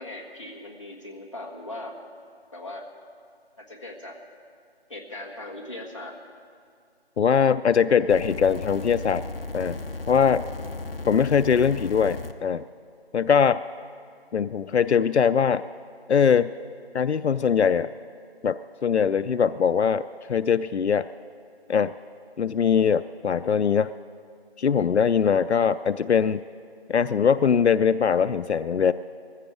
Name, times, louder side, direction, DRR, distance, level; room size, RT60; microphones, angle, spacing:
voice 1, 0.0-2.0 2.5-2.9 3.6-4.2 4.9-6.1, left 1 dB, 30° left, -2 dB, 1.5 m, -39 dB
voice 2, 7.2-9.2 9.5-9.8 10.1-10.4 11.1-12.6 13.1-13.6 14.3-15.6 16.1-16.5 16.9-17.9 18.4-20.0 20.3-21.1 21.7-21.9 22.4-23.9 24.6-26.4 26.9-28.9, left 7 dB, 90° left, 14 dB, 0.5 m, -21 dB
sound 1, 8.1-12.3 13.3-13.4, left 2 dB, 60° left, 0.9 m, -35 dB
20.5 x 15.0 x 4.7 m, 2.2 s
figure-of-eight pair, 175°, 32 cm